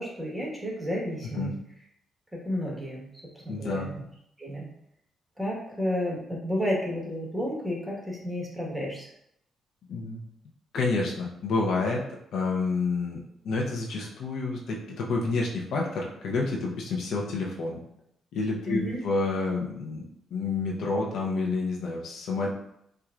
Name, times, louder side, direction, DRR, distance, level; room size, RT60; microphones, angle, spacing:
voice 1, 0.0-1.5 2.4-3.1 3.4-3.9 4.4-4.7 5.4-9.1 18.6-19.0, equal, 10° right, -4 dB, 1.4 m, -31 dB
voice 2, 3.5-3.9 9.9-10.2 10.7-12.0 12.3-17.8 18.3-20.0 20.3-22.5, left 3 dB, 75° left, -2 dB, 0.7 m, -29 dB
4.4 x 2.3 x 2.4 m, 0.74 s
supercardioid pair, 65°, 0 cm